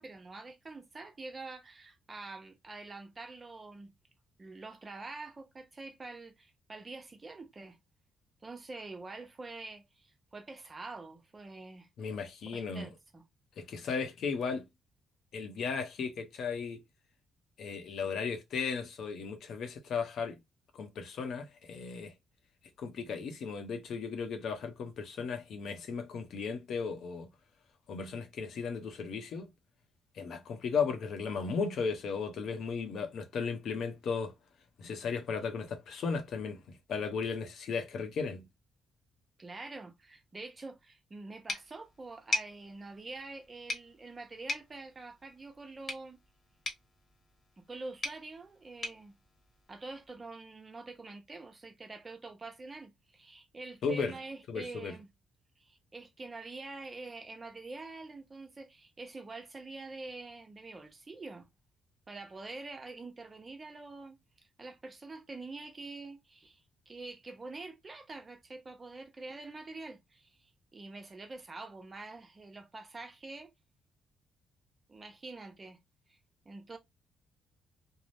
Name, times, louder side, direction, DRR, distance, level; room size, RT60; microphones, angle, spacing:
voice 1, 0.0-3.9 4.4-7.8 8.4-11.9 12.5-13.2 39.4-46.2 47.6-49.1 49.7-55.1 55.6-61.5 62.1-64.2 64.6-66.6 66.9-73.5 74.9-75.8 76.1-76.2 76.5-76.8, right 3 dB, 30° right, 0.7 m, -46 dB
voice 2, 12.0-12.9 13.6-14.6 15.3-16.8 17.6-20.4 20.7-22.1 22.8-27.3 27.9-29.5 30.1-34.3 34.8-38.5 53.8-54.2 54.5-54.9, left 5 dB, 65° left, 0.7 m, -35 dB
sound 1, 41.5-50.2, left 2 dB, 35° left, 1.1 m, -42 dB
2.7 x 2.1 x 3.2 m
cardioid pair, 90°, 0 cm